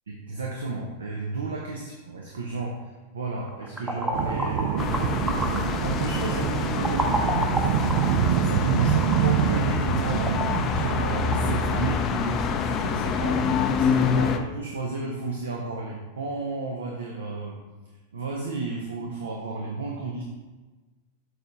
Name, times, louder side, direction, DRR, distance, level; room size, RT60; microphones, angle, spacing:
voice 1, 0.1-2.8 3.1-13.5 13.8-17.6 18.1-20.2, right 3 dB, 70° right, -1 dB, 0.8 m, -33 dB
sound 1, 3.5-12.4, right 1 dB, 10° right, 0.8 m, -33 dB
sound 2, 4.1-12.0, right 9 dB, 50° right, 0.4 m, -26 dB
sound 3, 4.8-14.4, left 6 dB, 30° left, 0.5 m, -27 dB
6.7 x 4.3 x 3.8 m, 1.2 s
figure-of-eight pair, 90°, 0 cm